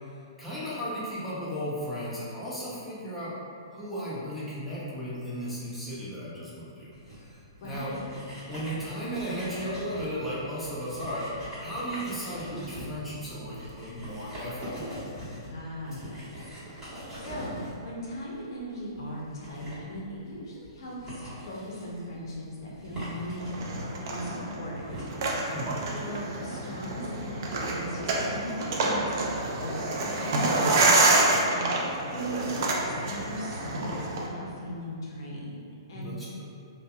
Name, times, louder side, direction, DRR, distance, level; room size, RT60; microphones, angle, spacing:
voice 1, 0.1-3.4 3.7-7.9 8.5-15.1 25.5-25.7 35.9-36.5, equal, ahead, -11 dB, 0.6 m, -35 dB
sound 1, 6.9-25.0, equal, 15° right, 1.4 m, -43 dB
voice 2, 7.6-8.0 15.5-16.2 17.2-25.5 25.9-35.6 35.9-36.1, equal, 60° left, -5 dB, 0.6 m, -38 dB
sound 2, 23.4-34.3, right 2 dB, 50° right, 0.4 m, -27 dB
2.6 x 2.2 x 2.3 m, 2.4 s
hypercardioid pair, 130°, 2 cm